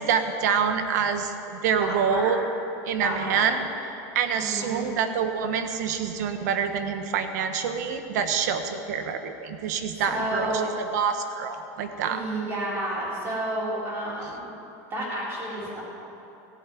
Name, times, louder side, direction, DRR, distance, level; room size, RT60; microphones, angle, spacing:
voice 1, 0.0-2.4 2.9-3.7 4.1-12.2, right 7 dB, 80° right, 7 dB, 1.3 m, -26 dB
voice 2, 1.8-2.3 2.9-3.5 4.3-4.9 9.9-10.6 12.0-14.5 14.9-15.8, right 1 dB, 25° right, -6 dB, 4.3 m, -31 dB
15.0 x 8.0 x 9.2 m, 3.0 s
supercardioid pair, 160°, 9 cm